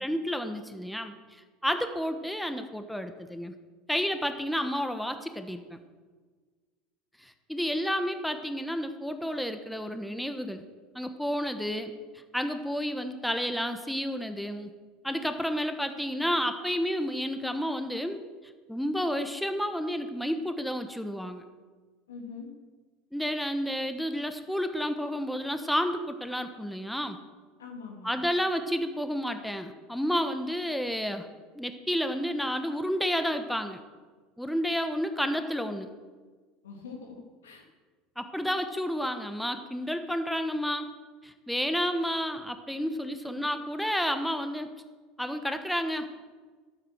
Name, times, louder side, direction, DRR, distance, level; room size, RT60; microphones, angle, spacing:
voice 1, 0.0-3.5 3.9-5.8 7.2-10.6 10.9-11.9 12.3-14.7 15.0-18.2 18.7-21.4 23.1-27.2 28.0-31.3 31.5-33.8 34.4-35.9 38.2-40.9 41.2-44.7 45.2-46.1, equal, ahead, 8 dB, 1.1 m, -31 dB
voice 2, 22.1-22.5 27.6-28.2 36.6-37.6 43.0-43.4, left 5 dB, 85° left, 2 dB, 2.2 m, -44 dB
12.0 x 8.8 x 6.4 m, 1.4 s
hypercardioid pair, 80°, 0 cm